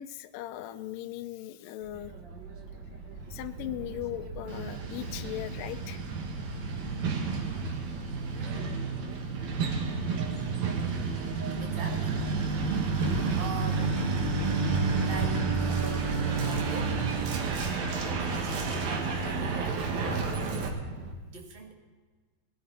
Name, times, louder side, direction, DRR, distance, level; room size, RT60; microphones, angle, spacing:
voice 1, 0.0-2.1 3.3-6.0 8.2-8.3 12.7-13.3, left 13 dB, 80° left, 8 dB, 2.2 m, -39 dB
sound 1, 1.8-21.1, right 2 dB, 55° right, 1.3 m, -41 dB
Truck, 4.5-20.7, right 4 dB, 90° right, 3.6 m, -30 dB
voice 2, 8.3-8.9 11.6-12.2 13.0-14.0 15.0-17.1 18.2-20.6 21.2-21.7, right 3 dB, 25° right, 1 dB, 1.2 m, -43 dB
Bowed string instrument, 13.5-18.2, right 6 dB, 75° right, 7.2 m, -38 dB
20.5 x 11.5 x 4.0 m, 1.4 s
omnidirectional pair, 4.1 m